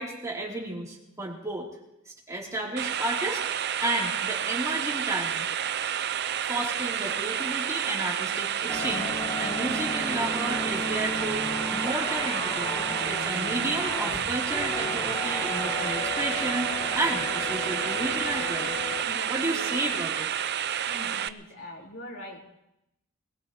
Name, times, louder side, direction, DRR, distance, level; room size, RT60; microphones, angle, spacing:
voice 1, 0.0-1.7 2.3-3.4 3.8-5.5 6.5-9.1 9.4-18.8 19.3-20.3, right 1 dB, 15° right, -3 dB, 3.5 m, -32 dB
sound 1, 2.8-21.3, right 9 dB, 55° right, 0.5 m, -30 dB
sound 2, 8.7-19.0, left 2 dB, 20° left, 1.7 m, -34 dB
voice 2, 19.0-20.0 20.8-22.4, left 1 dB, 60° left, -3 dB, 4.1 m, -42 dB
21.5 x 19.5 x 3.2 m, 0.85 s
head